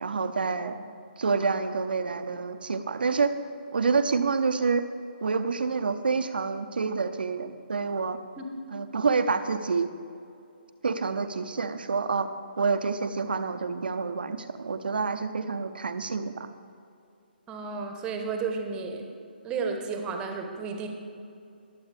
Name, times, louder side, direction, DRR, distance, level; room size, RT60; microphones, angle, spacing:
voice 1, 0.0-0.7 1.2-3.3 3.7-4.8 5.2-8.2 8.7-9.9 10.8-12.3 12.6-16.5, right 4 dB, 60° right, 9 dB, 0.8 m, -27 dB
voice 2, 17.5-19.0 19.4-20.9, right 5 dB, 15° right, 3 dB, 1.1 m, -32 dB
20.5 x 7.9 x 3.4 m, 2.5 s
figure-of-eight pair, 140°, 6 cm